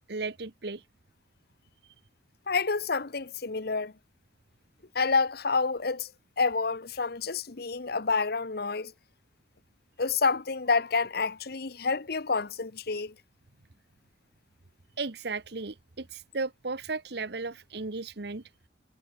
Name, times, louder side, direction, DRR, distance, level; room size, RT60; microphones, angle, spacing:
voice 1, 0.1-0.8 1.8-1.9 15.0-18.4, right 3 dB, 60° right, 1.1 m, -35 dB
voice 2, 2.5-3.9 4.9-6.1 6.4-8.9 10.0-13.1, left 4 dB, 55° left, 1.0 m, -28 dB
head